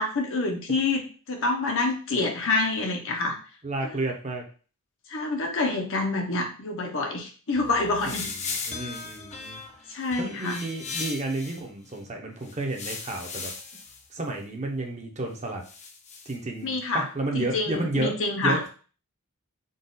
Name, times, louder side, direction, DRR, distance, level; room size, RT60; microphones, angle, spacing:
voice 1, 0.0-3.4 3.8-4.0 5.1-8.3 9.9-10.6 16.6-17.1 17.3-18.6, left 3 dB, 60° left, 2 dB, 0.8 m, -27 dB
voice 2, 3.6-4.4 8.0-8.3 8.7-9.6 10.2-13.5 14.1-15.6 16.3-18.1 18.4-18.7, right 2 dB, 30° right, 1 dB, 0.8 m, -31 dB
sound 1, 7.5-11.6 12.4-14.1 15.6-16.4, left 4 dB, 30° left, 0.5 m, -37 dB
3.9 x 2.4 x 3.9 m, 0.38 s
head